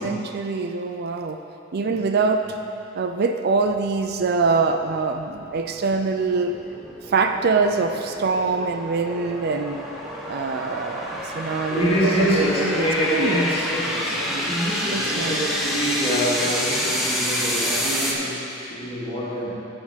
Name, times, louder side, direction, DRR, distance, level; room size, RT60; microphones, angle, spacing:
voice 1, 0.0-1.4 1.7-2.5 2.9-6.6 7.1-9.8 10.3-12.9 13.1-13.4 14.9-15.5, right 4 dB, 55° right, 6 dB, 0.4 m, -24 dB
sound 1, 3.6-18.1, equal, ahead, 1.0 m, -29 dB
voice 2, 11.7-19.5, equal, 30° left, -7 dB, 2.3 m, -25 dB
10.5 x 6.4 x 5.1 m, 2.7 s
head